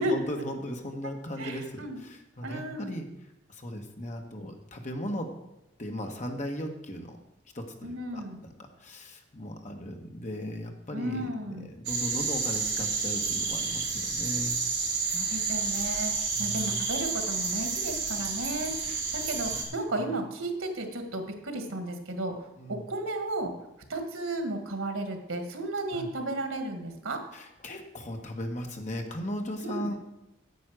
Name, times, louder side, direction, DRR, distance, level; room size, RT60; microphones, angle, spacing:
voice 1, 0.0-3.1 3.5-5.3 5.8-7.2 7.5-8.5 8.8-14.6 16.3-16.9 18.8-19.0 20.1-20.2 22.6-22.8 25.9-26.1 27.3-30.0, equal, 35° left, 3 dB, 1.4 m, -37 dB
voice 2, 1.4-2.0 2.4-2.9 7.8-8.4 10.9-11.7 15.1-23.5 23.9-27.2 29.6-29.9, right 1 dB, 90° right, 6 dB, 1.8 m, -34 dB
sound 1, 11.8-19.6, right 4 dB, 60° right, 4.1 m, -30 dB
9.4 x 8.1 x 6.3 m, 0.91 s
head